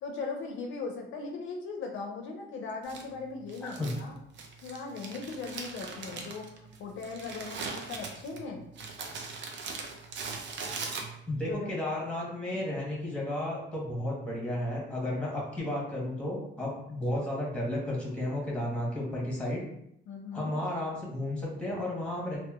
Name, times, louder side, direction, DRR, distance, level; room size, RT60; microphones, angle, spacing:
voice 1, 0.0-4.2 4.6-6.5 6.8-8.6 11.5-11.7 17.2-17.4 20.1-20.5, left 4 dB, 75° left, 2 dB, 0.5 m, -39 dB
Crumpling crinkling, 2.8-11.5, right 4 dB, 65° right, 0.5 m, -41 dB
voice 2, 3.6-3.9 11.3-19.7 20.3-22.4, left 1 dB, 5° left, -3 dB, 1.0 m, -33 dB
2.8 x 2.1 x 2.3 m, 0.76 s
cardioid pair, 90°, 20 cm